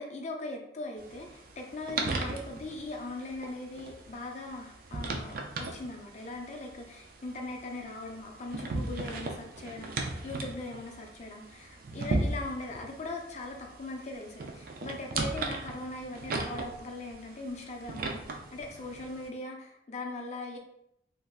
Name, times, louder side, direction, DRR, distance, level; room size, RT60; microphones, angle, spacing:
voice 1, 0.0-20.6, left 2 dB, 40° left, 2 dB, 0.5 m, -40 dB
sound 1, 1.0-19.3, right 3 dB, 50° right, 0.4 m, -38 dB
3.3 x 2.6 x 2.3 m, 0.77 s
head